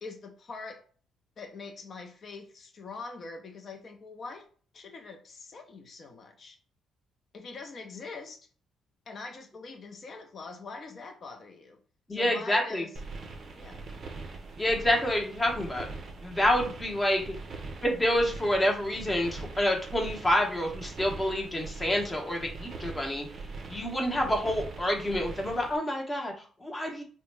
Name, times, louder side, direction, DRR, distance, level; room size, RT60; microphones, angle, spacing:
voice 1, 0.0-0.8 1.4-4.5 4.7-6.6 7.3-8.5 9.1-11.8 12.1-12.9 13.6-13.8, left 4 dB, 40° left, 0.6 m, -43 dB
voice 2, 12.1-12.9 14.6-15.9 16.2-17.3 17.8-23.3 23.7-27.0, left 1 dB, 15° left, 0.8 m, -28 dB
sound 1, 12.9-25.8, right 3 dB, 40° right, 0.5 m, -42 dB
3.4 x 2.1 x 3.2 m
cardioid pair, 125°, 0 cm